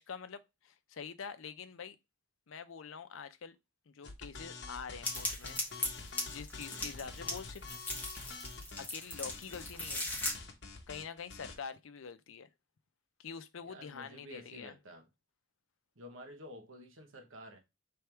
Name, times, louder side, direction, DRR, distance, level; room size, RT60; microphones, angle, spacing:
voice 1, 0.0-2.0 2.5-3.6 3.9-5.6 6.3-7.6 8.8-10.1 10.9-12.5 13.2-14.7, left 6 dB, 85° left, 0.5 m, -46 dB
sound 1, 4.0-11.6, left 4 dB, 55° left, 0.9 m, -47 dB
sound 2, 5.0-10.3, left 2 dB, 10° left, 1.3 m, -38 dB
voice 2, 6.7-7.1 13.6-15.1 15.9-17.6, equal, 85° right, 1.1 m, -51 dB
3.4 x 3.4 x 4.4 m
head